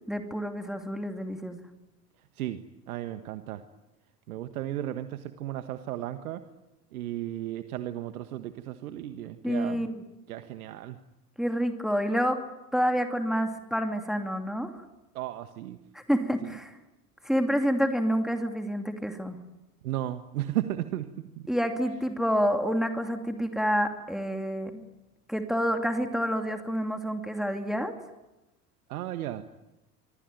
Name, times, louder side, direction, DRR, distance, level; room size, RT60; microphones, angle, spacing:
voice 1, 0.1-1.7 9.4-10.0 11.4-12.4 12.7-14.8 15.9-16.7 17.2-19.4 21.5-24.8 25.3-27.9, equal, ahead, 5 dB, 2.8 m, -28 dB
voice 2, 2.3-3.6 4.3-6.4 6.9-9.9 10.3-11.0 15.1-15.8 16.4-16.5 19.8-21.5 28.9-29.4, right 13 dB, 65° right, 10 dB, 1.6 m, -35 dB
26.5 x 24.5 x 9.3 m, 0.97 s
figure-of-eight pair, 80°, 47 cm